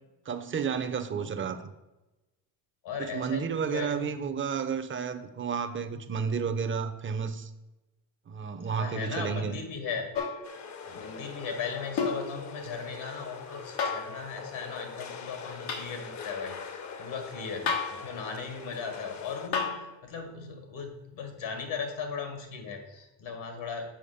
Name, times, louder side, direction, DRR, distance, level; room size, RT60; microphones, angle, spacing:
voice 1, 0.3-1.7 3.0-7.5 8.3-9.6 17.6-17.7, right 6 dB, 25° right, 0.6 m, -32 dB
voice 2, 2.8-4.2 8.7-10.1 10.9-16.6 17.0-17.6 17.9-23.9, left 5 dB, 70° left, 1.8 m, -37 dB
sound 1, 10.1-10.5 12.0-12.3 13.8-14.1 15.7-15.9 17.7-18.0 19.5-19.8 21.6-21.7, left 5 dB, 85° left, 1.5 m, -30 dB
sound 2, 10.4-19.5, left 6 dB, 35° left, 0.8 m, -43 dB
7.1 x 4.9 x 5.0 m
cardioid pair, 95°, 48 cm